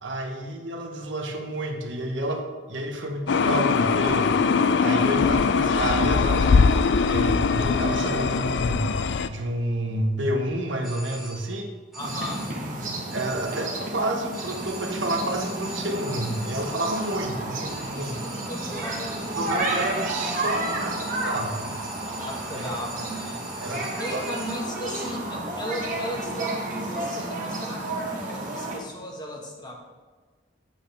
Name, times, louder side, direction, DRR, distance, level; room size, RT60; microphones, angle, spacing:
voice 1, 0.0-4.3 4.8-9.0 9.3-11.7 13.1-18.1 19.4-21.7 22.5-22.6 23.6-24.2, right 1 dB, 80° right, 3 dB, 1.2 m, -29 dB
sound 1, 3.3-9.3, left 5 dB, 65° left, 0.4 m, -21 dB
sound 2, 10.8-11.6 11.9-12.7 13.1-13.9 14.3-24.8, right 2 dB, ahead, 2.0 m, -43 dB
voice 2, 11.9-12.5 17.9-19.3 19.5-19.9 22.2-29.8, equal, 20° left, -1 dB, 1.3 m, -36 dB
sound 3, 12.0-28.8, right 2 dB, 45° right, 1.4 m, -31 dB
8.6 x 8.1 x 3.4 m, 1.4 s
head